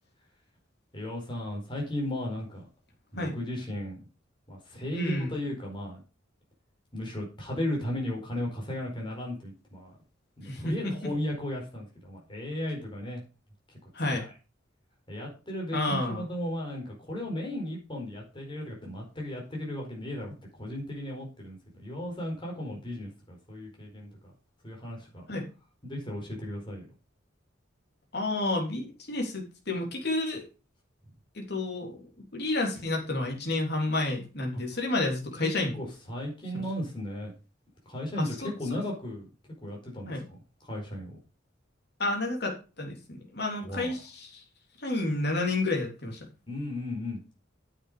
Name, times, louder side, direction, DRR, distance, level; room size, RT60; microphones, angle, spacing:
voice 1, 0.9-2.6 3.1-4.0 4.5-6.0 6.9-9.9 10.4-13.2 14.1-14.3 15.1-24.1 24.6-25.2 25.8-26.8 34.5-34.6 35.4-37.3 37.9-39.3 39.6-41.2 43.6-43.9 46.5-47.2, left 1 dB, 25° left, -1 dB, 4.7 m, -35 dB
voice 2, 4.9-5.3 10.4-10.9 13.9-14.2 15.7-16.3 25.3-25.5 28.1-30.4 31.3-32.0 32.3-35.7 38.2-38.8 40.1-40.2 42.0-44.4 44.8-46.2, left 2 dB, 55° left, 1 dB, 3.3 m, -30 dB
9.7 x 7.6 x 5.1 m, 0.32 s
head